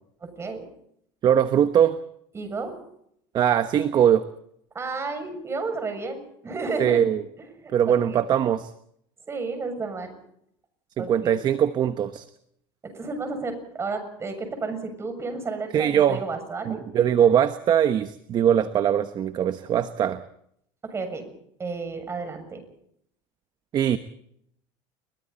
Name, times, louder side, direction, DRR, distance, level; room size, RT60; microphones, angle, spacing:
voice 1, 0.2-0.6 2.3-2.7 4.7-8.2 9.3-10.1 11.0-11.3 12.9-16.8 20.9-21.3 21.6-22.6, right 4 dB, 20° right, 7 dB, 7.0 m, -32 dB
voice 2, 1.2-2.0 3.3-4.3 6.8-7.2 7.7-8.7 11.0-12.2 15.7-16.2 16.7-20.2 23.7-24.0, right 9 dB, 40° right, 10 dB, 1.2 m, -21 dB
29.5 x 22.5 x 4.2 m, 0.72 s
supercardioid pair, 130°, 12 cm